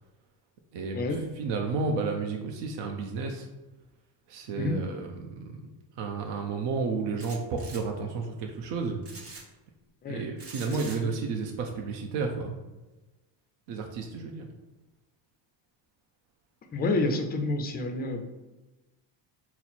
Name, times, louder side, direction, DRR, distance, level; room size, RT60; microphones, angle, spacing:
voice 1, 0.7-1.0 1.4-3.5 4.3-5.7 6.0-9.0 10.1-12.6 13.7-14.5, right 4 dB, 60° right, 2 dB, 0.7 m, -32 dB
sound 1, 7.2-7.8 9.0-9.4 10.4-11.0, right 3 dB, 30° right, 0.9 m, -44 dB
voice 2, 10.7-11.1 16.7-18.3, left 2 dB, 25° left, 5 dB, 0.3 m, -29 dB
4.3 x 2.0 x 4.1 m, 1.1 s
cardioid pair, 125°, 47 cm